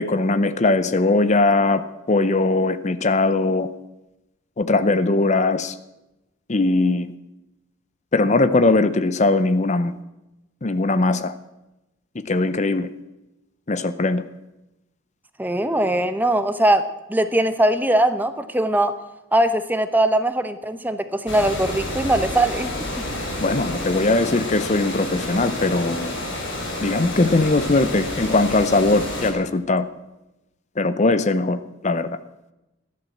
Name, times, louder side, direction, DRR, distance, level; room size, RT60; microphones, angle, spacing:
voice 1, 0.0-3.7 4.6-5.8 6.5-7.1 8.1-9.9 10.6-11.3 12.3-12.9 13.7-14.2 23.4-26.2 26.8-29.9 30.8-32.2, left 2 dB, 35° left, 13 dB, 0.6 m, -20 dB
voice 2, 15.4-18.9 19.3-22.7, right 1 dB, 10° right, 11 dB, 0.8 m, -21 dB
Water, 21.3-29.3, left 1 dB, 60° left, 5.7 m, -29 dB
16.0 x 11.0 x 7.8 m, 0.98 s
head